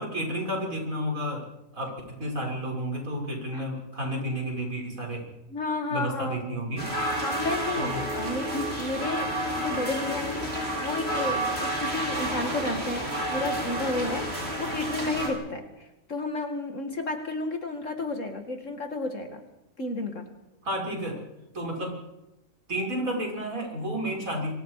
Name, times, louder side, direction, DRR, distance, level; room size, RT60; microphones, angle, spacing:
voice 1, 0.0-1.4 1.7-5.3 5.9-6.9 7.8-8.1 20.6-21.2 21.5-22.0 22.7-24.5, right 1 dB, 75° right, -1 dB, 6.8 m, -31 dB
voice 2, 5.5-6.5 7.2-14.3 14.6-15.7 16.1-19.4 19.8-20.3, left 2 dB, 60° left, 6 dB, 2.6 m, -32 dB
sound 1, 6.8-15.3, right 1 dB, 45° right, 6.4 m, -30 dB
27.0 x 25.0 x 5.0 m, 0.96 s
omnidirectional pair, 1.4 m